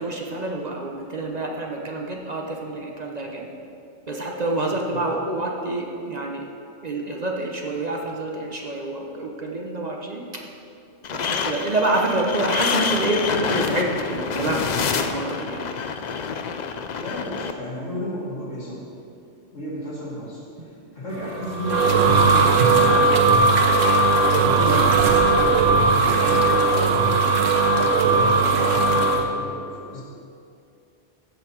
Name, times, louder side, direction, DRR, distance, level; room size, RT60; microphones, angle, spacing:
voice 1, 0.0-3.5 4.1-6.5 6.8-10.4 11.1-14.7 15.0-15.6 24.5-25.0, right 2 dB, 40° right, 0 dB, 0.9 m, -27 dB
sound 1, 11.0-17.5, left 6 dB, 55° left, 0.4 m, -27 dB
voice 2, 17.0-18.8 19.5-20.4 20.9-23.4 24.3-30.0, equal, 85° left, -6 dB, 2.8 m, -33 dB
sound 2, 21.2-29.2, right 3 dB, 90° right, 1.3 m, -18 dB
15.0 x 5.7 x 4.5 m, 2.5 s
omnidirectional pair, 1.2 m